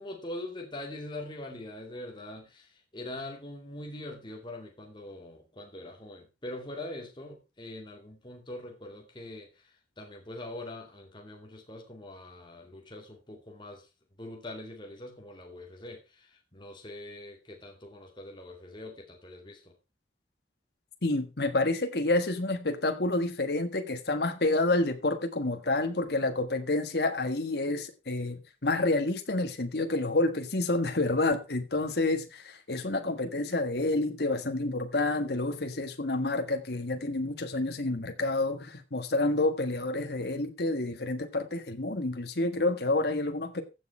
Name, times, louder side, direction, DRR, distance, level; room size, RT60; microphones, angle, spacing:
voice 1, 0.0-9.5 10.0-13.9 14.2-19.7, left 1 dB, 25° left, 2.4 m, -43 dB
voice 2, 21.0-43.6, left 2 dB, 60° left, 1.5 m, -29 dB
15.0 x 6.5 x 4.4 m
head